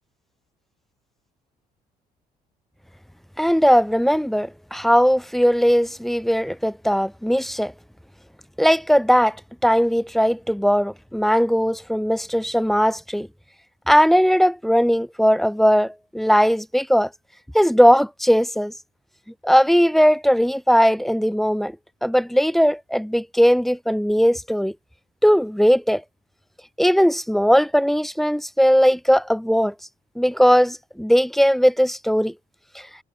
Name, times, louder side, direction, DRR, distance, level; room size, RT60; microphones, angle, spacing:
voice 1, 3.4-7.7 8.6-9.4 9.6-13.3 13.9-17.1 17.5-18.7 19.4-21.8 22.0-24.7 25.2-26.0 26.8-29.7 30.2-32.3 32.7-32.8, equal, ahead, 0.8 m, -18 dB
cardioid pair, 110°, 17 cm